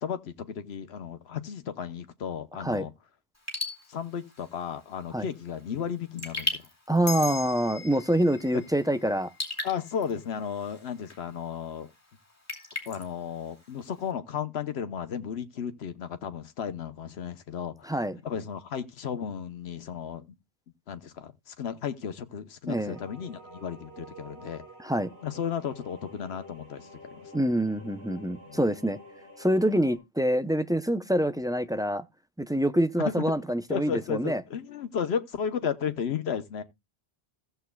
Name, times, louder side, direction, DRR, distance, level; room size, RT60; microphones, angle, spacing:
voice 1, 0.0-2.9 3.9-6.6 9.6-11.9 12.9-17.9 18.2-20.3 20.9-24.6 25.2-27.3 28.5-28.6 33.0-33.1 33.7-36.6, left 7 dB, 85° left, 1.1 m, -34 dB
Raindrop / Drip, 3.3-14.1, left 2 dB, 15° left, 2.5 m, -40 dB
voice 2, 6.9-9.3 17.8-18.2 22.7-23.0 24.8-25.1 27.3-29.0 29.4-32.0 32.4-34.4, right 1 dB, 5° right, 0.3 m, -26 dB
sound 1, 7.1-11.8, left 6 dB, 60° left, 1.0 m, -42 dB
sound 2, 22.9-30.0, equal, 50° right, 6.2 m, -49 dB
15.5 x 7.9 x 2.2 m
omnidirectional pair, 1.0 m